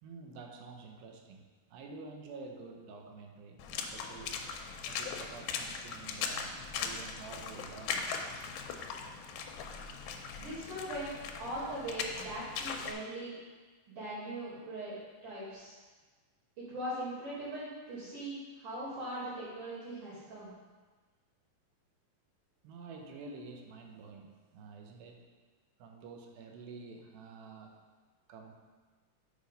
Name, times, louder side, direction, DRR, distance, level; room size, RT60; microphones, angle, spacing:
voice 1, 0.0-4.5 4.9-8.2 22.6-25.3 25.8-27.8 28.3-28.5, right 4 dB, 85° right, 2 dB, 2.6 m, -49 dB
Water / Splash splatter, 3.6-12.9, left 5 dB, 85° left, 2.4 m, -39 dB
voice 2, 10.4-11.1 11.4-13.4 13.9-14.9 15.2-15.8 16.6-20.5, right 1 dB, 60° right, -12 dB, 4.1 m, -40 dB
6.9 x 4.7 x 5.2 m, 1.4 s
omnidirectional pair, 4.2 m